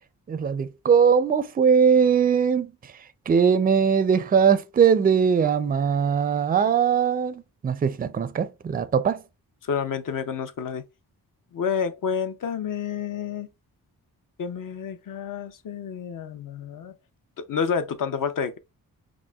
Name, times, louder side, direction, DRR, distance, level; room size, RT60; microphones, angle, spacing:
voice 1, 0.3-2.7 3.3-9.2, right 7 dB, 25° right, 0.4 m, -20 dB
voice 2, 9.6-10.8 11.5-13.5 14.4-16.9 17.4-18.6, left 6 dB, 55° left, 0.7 m, -29 dB
6.0 x 2.1 x 2.3 m
cardioid pair, 60°, 39 cm